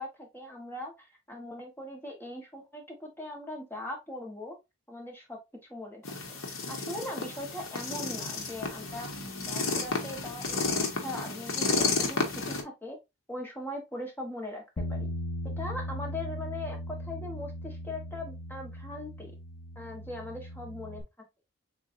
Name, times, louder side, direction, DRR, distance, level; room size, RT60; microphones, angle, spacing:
voice 1, 0.0-4.6 4.9-5.4 5.7-6.1 6.4-13.0 13.3-15.1 15.6-19.3 19.7-21.0, left 1 dB, 10° left, 1 dB, 1.1 m, -40 dB
sound 1, 6.0-12.6, left 3 dB, 70° left, 1.1 m, -32 dB
Bass guitar, 14.8-21.0, left 1 dB, 45° left, 0.6 m, -38 dB
6.7 x 2.4 x 2.5 m, 0.22 s
head